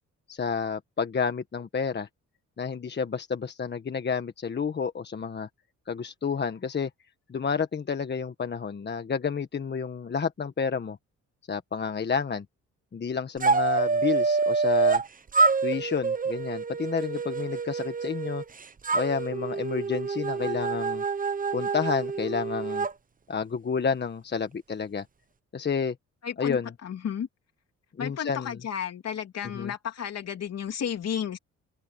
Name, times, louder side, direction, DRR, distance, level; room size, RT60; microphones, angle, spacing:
voice 1, 0.3-2.1 2.6-5.5 5.9-6.9 7.3-11.0 11.5-12.4 12.9-15.0 15.6-18.4 18.9-21.0 21.5-22.9 23.3-25.0 25.5-25.9 26.4-26.7 28.0-28.6 29.5-29.7, left 6 dB, 35° left, 1.4 m, -30 dB
sound 1, 13.4-15.1 15.3-18.4 18.8-22.9, right 4 dB, 25° right, 1.0 m, -26 dB
voice 2, 26.2-27.3 28.0-31.4, left 8 dB, 55° left, 3.1 m, -33 dB
open air
cardioid pair, 90°, 30 cm